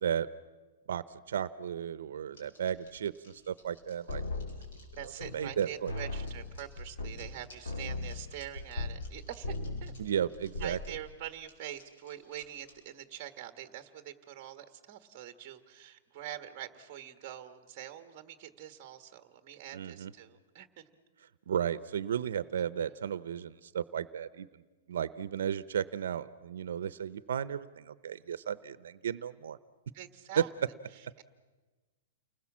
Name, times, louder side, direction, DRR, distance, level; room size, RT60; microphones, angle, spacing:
voice 1, 0.9-4.6 5.3-5.9 10.0-10.8 19.7-20.1 21.5-24.5 24.9-29.6 30.4-30.5, right 8 dB, 70° right, 15 dB, 0.7 m, -34 dB
sound 1, 2.3-12.9, left 2 dB, 60° left, 7.5 m, -58 dB
sound 2, 4.1-5.6 5.9-9.2 9.4-10.0 10.3-10.9, left 2 dB, 90° left, 4.2 m, -38 dB
voice 2, 4.9-9.5 9.8-9.9 10.6-20.9 29.9-30.5 30.9-31.2, right 11 dB, 25° right, 9 dB, 1.5 m, -45 dB
29.5 x 20.0 x 7.4 m, 1.3 s
hypercardioid pair, 175°, 0 cm